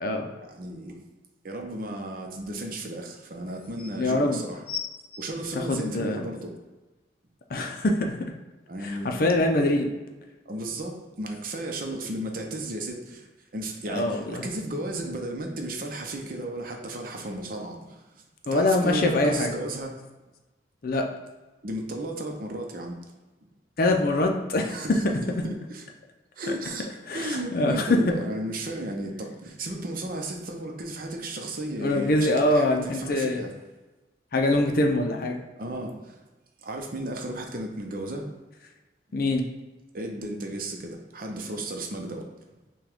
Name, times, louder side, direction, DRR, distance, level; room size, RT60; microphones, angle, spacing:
voice 1, 0.4-1.0 1.4-4.6 5.2-6.5 8.7-9.4 10.5-18.0 18.5-20.0 21.6-23.0 24.6-25.8 26.4-33.5 35.6-36.2 36.6-38.3 39.9-42.3, right 1 dB, 50° right, 2 dB, 0.7 m, -34 dB
sound 1, 1.3-1.4 3.0-3.1 3.4-3.9 4.6-6.3 7.0-7.1, left 6 dB, 30° left, 1.2 m, -37 dB
voice 2, 3.9-4.4 5.5-6.2 7.5-8.2 8.8-9.9 13.9-14.4 18.5-19.5 20.8-21.1 23.8-25.0 27.1-28.1 31.8-33.4 34.3-35.4 39.1-39.5, left 1 dB, 50° left, 3 dB, 0.5 m, -24 dB
6.0 x 2.3 x 3.5 m, 1.2 s
head